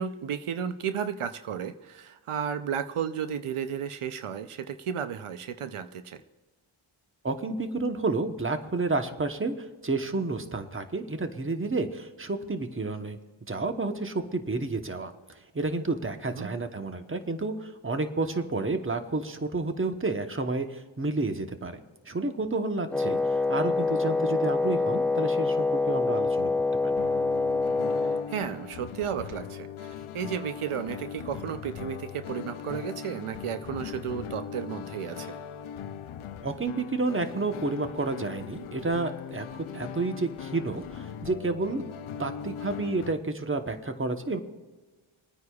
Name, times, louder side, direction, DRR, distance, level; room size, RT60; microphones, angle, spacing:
voice 1, 0.0-6.2 16.4-16.5 28.3-35.4, right 8 dB, 85° right, 10 dB, 0.7 m, -33 dB
voice 2, 7.2-13.2 13.5-15.1 15.5-21.8 22.1-26.5 26.8-27.0 36.4-41.8 42.2-44.4, right 3 dB, 25° right, 7 dB, 1.0 m, -30 dB
Wind instrument woodwind instrument, 22.9-28.3, left 3 dB, 5° left, 0.4 m, -26 dB
sound 1, 27.0-43.1, left 8 dB, 80° left, 0.6 m, -40 dB
28.0 x 9.5 x 2.4 m, 1.3 s
wide cardioid pair, 65°, 50 cm